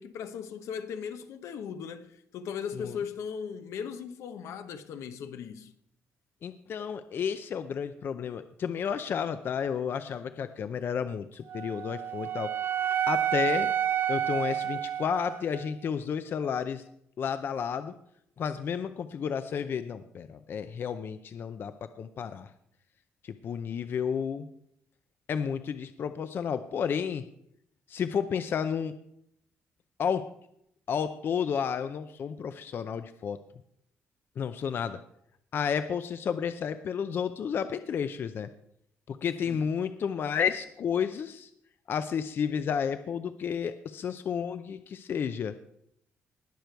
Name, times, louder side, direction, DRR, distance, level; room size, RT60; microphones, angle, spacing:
voice 1, 0.0-5.7 39.4-39.6, left 7 dB, 80° left, 1.0 m, -38 dB
voice 2, 6.4-12.5 13.1-13.7 14.1-16.8 17.2-17.9 18.4-22.5 23.2-24.5 25.3-27.2 27.9-28.9 30.0-30.3 30.9-33.4 34.4-35.0 35.5-38.5 39.1-41.5 41.9-45.5, left 7 dB, 45° left, 0.6 m, -31 dB
Wind instrument woodwind instrument, 11.5-15.7, right 9 dB, 45° right, 0.4 m, -30 dB
19.5 x 6.8 x 4.6 m
cardioid pair, 150°, 5 cm